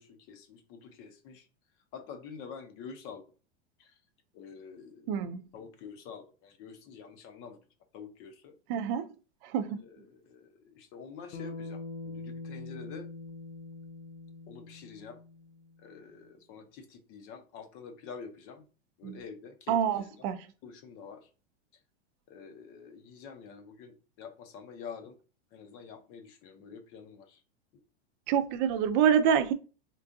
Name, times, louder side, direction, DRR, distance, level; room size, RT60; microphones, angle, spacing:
voice 1, 0.0-1.5 1.9-3.2 3.8-3.9 4.3-5.1 5.5-7.6 7.9-8.5 9.8-13.1 14.5-15.2 15.8-18.6 19.0-20.3 20.6-21.3 22.3-25.2 25.5-27.4, left 6 dB, 40° left, 0.7 m, -47 dB
voice 2, 5.1-5.4 8.7-9.0 9.5-9.8 19.0-19.2 19.7-20.4 28.3-29.5, right 8 dB, 50° right, 0.5 m, -26 dB
Bass guitar, 11.3-15.8, left 3 dB, 75° left, 0.6 m, -43 dB
3.7 x 2.4 x 2.5 m
supercardioid pair, 130°, 33 cm